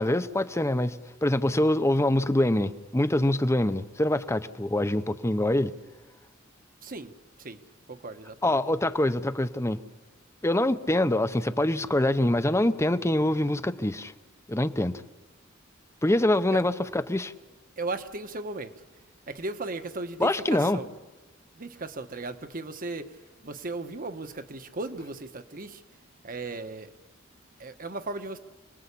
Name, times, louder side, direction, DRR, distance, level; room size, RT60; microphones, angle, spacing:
voice 1, 0.0-5.7 8.4-9.8 10.4-14.1 14.5-15.0 16.0-17.3 20.2-20.8, left 1 dB, 15° left, 0.8 m, -25 dB
voice 2, 6.8-7.6 7.9-8.6 16.5-16.6 17.8-18.7 19.3-20.9 21.5-23.2 23.4-25.8 26.2-26.9 27.6-28.4, right 2 dB, 45° right, 1.3 m, -36 dB
27.5 x 20.0 x 8.5 m
head